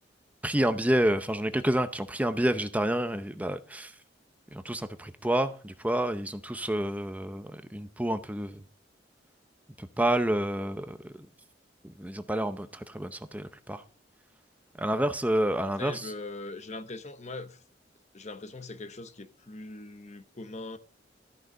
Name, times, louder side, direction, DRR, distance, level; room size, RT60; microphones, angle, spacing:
voice 1, 0.4-3.9 4.5-8.6 9.8-11.1 11.8-13.8 14.8-16.1, right 1 dB, 10° right, 0.7 m, -29 dB
voice 2, 15.6-17.6 18.1-20.8, left 2 dB, 40° left, 0.9 m, -41 dB
13.5 x 6.5 x 5.3 m
head